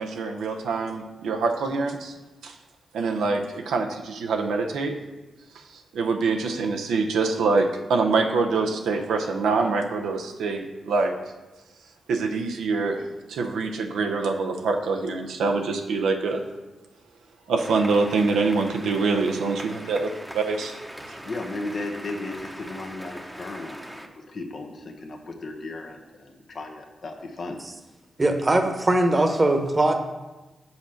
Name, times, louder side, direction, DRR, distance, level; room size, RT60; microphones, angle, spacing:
voice 1, 0.0-2.1 2.4-2.5 2.9-4.9 5.9-11.2 12.1-16.4 17.5-20.8 21.1-21.2, right 4 dB, 85° right, 3 dB, 0.6 m, -25 dB
sound 1, 17.6-24.1, equal, 10° right, 0.9 m, -41 dB
voice 2, 21.2-27.6, left 2 dB, 65° left, 3 dB, 1.0 m, -35 dB
voice 3, 28.2-29.9, right 2 dB, 35° right, 5 dB, 1.1 m, -20 dB
5.7 x 4.4 x 6.3 m, 1.1 s
supercardioid pair, 45°, 0 cm